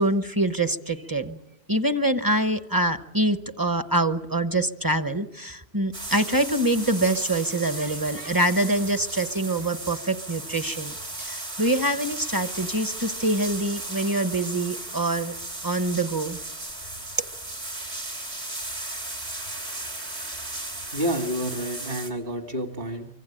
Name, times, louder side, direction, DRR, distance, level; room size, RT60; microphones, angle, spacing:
voice 1, 0.0-1.4 1.7-15.4 15.6-16.4, right 1 dB, 20° right, 10 dB, 0.9 m, -25 dB
sound 1, 5.9-22.1, right 2 dB, 90° right, 3.9 m, -36 dB
voice 2, 20.9-23.1, equal, 60° right, 5 dB, 2.5 m, -29 dB
25.0 x 24.5 x 8.9 m, 0.97 s
omnidirectional pair, 1.1 m